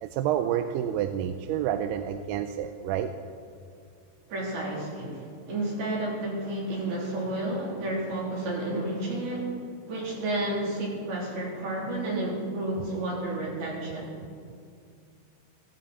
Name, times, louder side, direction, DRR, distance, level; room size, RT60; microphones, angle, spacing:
voice 1, 0.0-3.1, right 10 dB, 80° right, 8 dB, 2.5 m, -29 dB
voice 2, 4.3-9.6 9.9-14.2, right 1 dB, 65° right, -4 dB, 5.2 m, -31 dB
16.5 x 15.5 x 4.2 m, 2.3 s
omnidirectional pair, 4.8 m